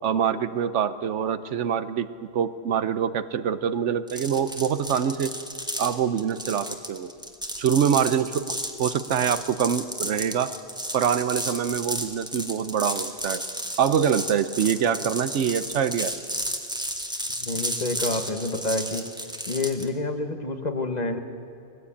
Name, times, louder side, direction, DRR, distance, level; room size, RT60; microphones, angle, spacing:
voice 1, 0.0-2.1 2.3-5.3 5.8-7.1 7.6-8.4 8.8-10.5 10.9-13.4 13.8-16.1, right 8 dB, 80° right, 13 dB, 1.1 m, -25 dB
sound 1, 4.1-19.9, equal, 5° right, 1.4 m, -33 dB
voice 2, 17.4-19.1 19.5-21.2, left 2 dB, 40° left, 7 dB, 1.2 m, -28 dB
20.0 x 15.5 x 8.5 m, 2.5 s
omnidirectional pair, 1.2 m